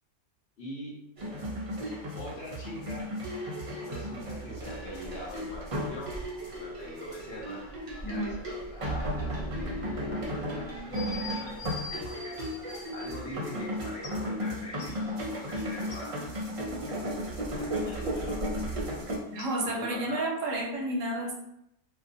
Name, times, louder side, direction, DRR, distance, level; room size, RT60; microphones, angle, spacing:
voice 1, 0.6-1.0 2.2-3.1 3.8-6.1 6.5-7.6 8.1-12.4 12.9-16.2 17.4-18.4 19.6-20.3, left 1 dB, 60° left, -4 dB, 0.9 m, -43 dB
sound 1, 1.2-19.2, equal, 60° right, 0.3 m, -35 dB
sound 2, 10.9-13.2 14.0-14.1 14.8-16.0 19.4-19.5, left 4 dB, 85° left, 1.0 m, -43 dB
voice 2, 19.3-21.3, right 1 dB, 80° right, 0 dB, 1.0 m, -31 dB
2.5 x 2.3 x 2.5 m, 0.80 s
omnidirectional pair, 1.3 m